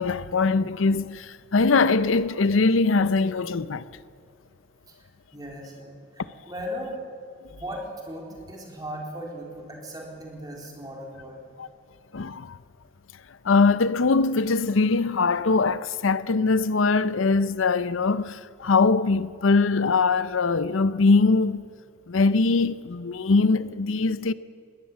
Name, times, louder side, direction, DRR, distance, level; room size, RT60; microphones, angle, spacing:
voice 1, 0.0-3.8 11.6-11.7 12.1-12.6 13.4-21.6 22.1-24.3, left 4 dB, 90° left, 0.6 m, -22 dB
voice 2, 4.9-6.9 7.5-11.4, equal, 20° right, 4.1 m, -38 dB
21.0 x 18.0 x 7.4 m
head